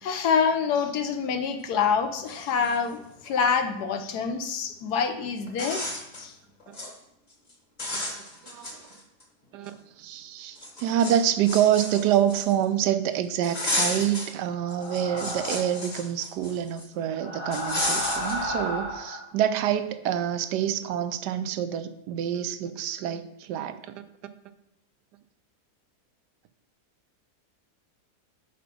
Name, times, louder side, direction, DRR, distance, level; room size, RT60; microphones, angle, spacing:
voice 1, 0.0-6.3, left 6 dB, 75° left, 7 dB, 1.3 m, -26 dB
sound 1, 1.9-2.0 2.2-3.4 4.9-5.0 5.5-6.3 6.6-6.9 7.3-7.5 7.8-9.2 9.6-9.7 10.6-12.7 13.4-14.3 14.7-16.8 17.5-18.5, left 1 dB, 30° left, 1.1 m, -33 dB
voice 2, 8.4-8.8 9.5-23.9, right 10 dB, 90° right, 11 dB, 1.2 m, -27 dB
sound 2, 14.6-15.8 17.1-19.2, equal, 55° left, 2.4 m, -33 dB
5.9 x 5.1 x 6.0 m, 0.81 s
omnidirectional pair, 1.7 m